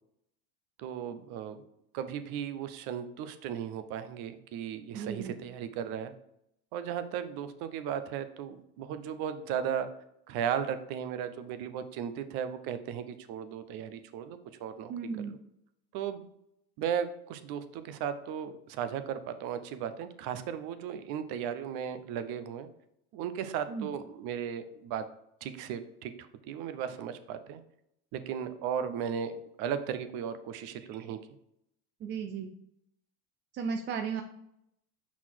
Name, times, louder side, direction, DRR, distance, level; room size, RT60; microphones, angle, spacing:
voice 1, 0.8-1.6 1.9-6.1 6.7-9.9 10.3-14.9 15.2-15.3 15.9-16.3 16.8-22.7 23.1-25.1 25.4-27.6 28.1-31.2, right 8 dB, 50° right, 11 dB, 0.7 m, -36 dB
voice 2, 4.9-5.3 14.9-15.3 23.7-23.9 32.0-32.5 33.5-34.2, right 6 dB, 25° right, 5 dB, 0.4 m, -35 dB
5.7 x 4.1 x 4.5 m, 0.78 s
supercardioid pair, 110°, 47 cm